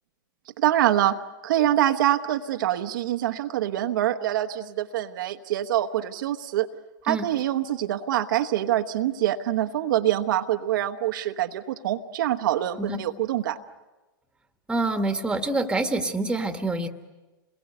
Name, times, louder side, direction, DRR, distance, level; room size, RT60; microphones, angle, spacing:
voice 1, 0.6-6.7 7.0-13.6, right 12 dB, 65° right, 6 dB, 1.1 m, -25 dB
voice 2, 14.7-16.9, right 2 dB, 5° right, 7 dB, 1.6 m, -26 dB
29.0 x 21.5 x 8.0 m, 1.2 s
hypercardioid pair, 120°, 12 cm